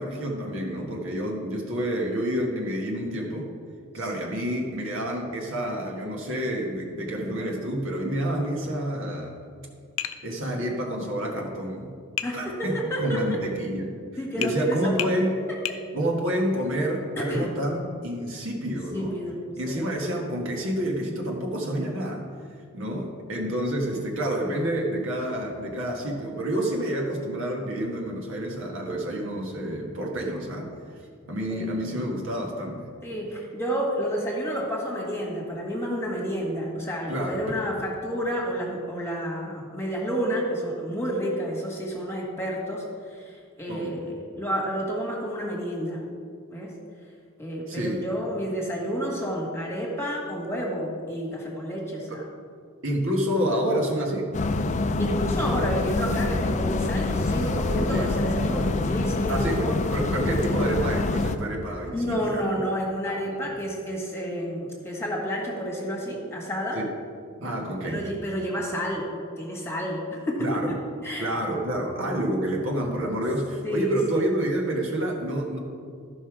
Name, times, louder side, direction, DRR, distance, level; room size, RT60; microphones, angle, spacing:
voice 1, 0.0-3.5 3.9-9.3 10.2-11.9 12.3-13.9 14.4-15.3 15.9-19.2 19.6-22.2 22.7-30.7 31.3-32.9 37.1-37.4 43.7-44.0 47.7-48.0 52.1-52.2 52.8-54.3 57.9-58.1 59.3-62.4 63.0-63.4 66.7-66.9 67.4-68.0 70.4-70.8 71.2-75.6, right 1 dB, 65° right, 0 dB, 1.5 m, -28 dB
voice 2, 3.9-4.3 12.2-13.4 14.2-15.1 15.5-15.6 17.2-17.6 18.7-19.4 19.7-19.9 31.5-31.7 33.0-46.0 46.5-46.7 47.4-52.2 55.0-59.8 61.6-66.8 67.8-69.1 69.4-70.7 71.0-71.3 73.6-74.2, equal, 10° left, -2 dB, 1.7 m, -30 dB
Tap, 10.0-10.2 12.2-12.4 14.4-14.6 15.0-15.2 15.7-15.8, left 11 dB, 80° left, 0.6 m, -30 dB
sound 1, 54.3-61.4, left 2 dB, 35° left, 0.4 m, -26 dB
13.0 x 5.5 x 4.9 m, 2.2 s
head